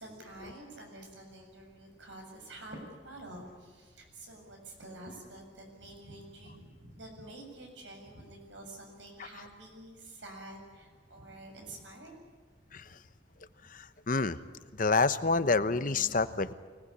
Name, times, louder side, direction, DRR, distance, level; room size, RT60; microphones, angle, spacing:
voice 1, 0.0-12.2, right 1 dB, 90° right, 2 dB, 7.4 m, -48 dB
voice 2, 13.7-14.4 14.7-16.5, left 3 dB, 50° left, 12 dB, 1.0 m, -28 dB
25.0 x 19.0 x 10.0 m, 1.5 s
head